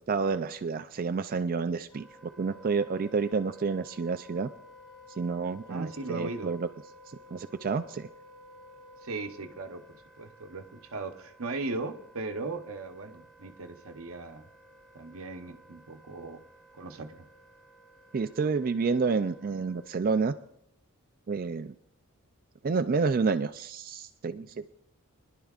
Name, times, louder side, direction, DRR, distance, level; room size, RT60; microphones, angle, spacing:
voice 1, 0.1-2.1 2.4-4.5 5.2-6.7 7.3-8.1 18.1-20.3 21.3-21.7 22.6-24.7, right 4 dB, 40° right, 10 dB, 0.4 m, -29 dB
Wind instrument woodwind instrument, 1.9-20.1, left 1 dB, ahead, 1.3 m, -54 dB
voice 2, 5.7-6.5 9.0-9.8 10.2-14.4 14.9-16.4 16.8-17.3, right 3 dB, 65° right, 5 dB, 0.9 m, -38 dB
23.5 x 11.5 x 2.4 m, 0.73 s
head